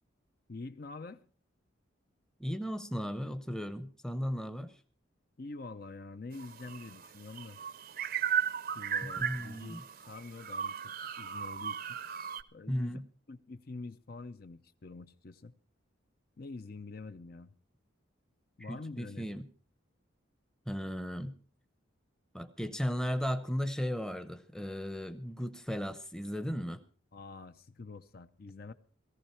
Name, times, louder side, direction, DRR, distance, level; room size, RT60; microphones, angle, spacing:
voice 1, 0.5-1.2 5.4-7.6 8.7-9.8 10.1-10.8 11.2-12.0 12.5-13.0 13.3-15.5 16.4-17.5 18.6-19.3 27.1-28.7, left 3 dB, 50° left, 0.6 m, -46 dB
voice 2, 2.4-4.8 9.0-9.8 12.7-13.0 18.6-19.5 20.7-21.4 22.3-26.8, equal, 5° left, 0.8 m, -36 dB
sound 1, 6.3-12.4, right 8 dB, 45° right, 0.7 m, -36 dB
17.5 x 14.5 x 4.4 m
head